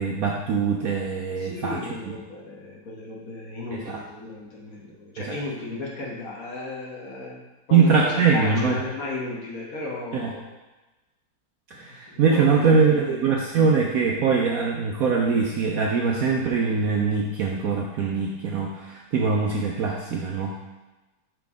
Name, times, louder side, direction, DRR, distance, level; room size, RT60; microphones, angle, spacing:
voice 1, 0.0-1.8 3.7-4.0 5.2-5.4 7.7-8.8 10.1-10.3 11.7-20.6, right 5 dB, 65° right, -1 dB, 0.9 m, -22 dB
voice 2, 1.4-7.4 7.7-10.5 11.7-13.2, left 3 dB, 50° left, -3 dB, 1.5 m, -34 dB
6.1 x 5.8 x 3.6 m, 1.1 s
omnidirectional pair, 2.1 m